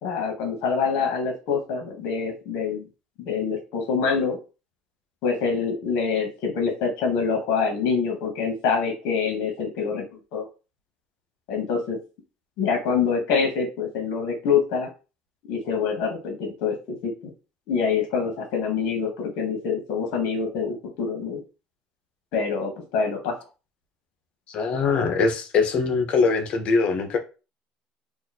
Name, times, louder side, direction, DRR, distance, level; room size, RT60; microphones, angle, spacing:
voice 1, 0.0-2.8 3.3-4.4 5.2-10.4 11.5-12.0 12.6-14.9 15.5-17.3 17.7-21.4 22.3-23.4, left 5 dB, 70° left, 2 dB, 1.0 m, -25 dB
voice 2, 24.5-27.2, left 4 dB, 50° left, 5 dB, 0.9 m, -22 dB
2.9 x 2.5 x 4.1 m, 0.32 s
cardioid pair, 115°, 3 cm